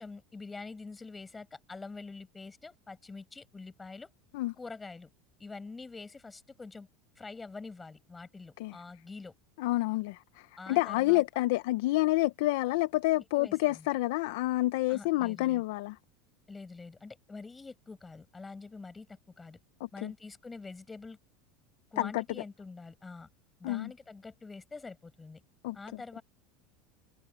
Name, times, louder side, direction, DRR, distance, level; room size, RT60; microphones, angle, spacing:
voice 1, 0.0-4.1 4.6-5.1 5.4-6.9 7.2-9.3 10.6-11.2 13.4-13.9 14.9-15.6 16.5-19.6 19.9-21.2 21.9-23.3 23.6-25.4 25.7-26.2, left 3 dB, 10° left, 6.3 m, -46 dB
voice 2, 9.6-16.0 20.0-20.1 22.0-22.2 23.6-23.9 25.6-25.8, left 19 dB, 70° left, 0.6 m, -28 dB
supercardioid pair, 145°, 0 cm